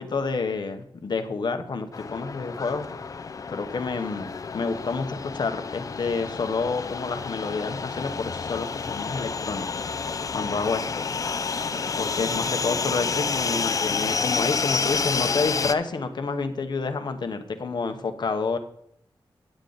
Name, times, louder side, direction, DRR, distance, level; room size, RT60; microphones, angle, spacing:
voice 1, 0.0-2.9 3.5-9.8 10.3-11.0 12.0-18.6, left 4 dB, 55° left, 7 dB, 1.0 m, -29 dB
sound 1, 1.9-15.7, left 5 dB, 40° left, 0.4 m, -29 dB
10.0 x 8.9 x 3.9 m, 0.69 s
wide cardioid pair, 165°, 9 cm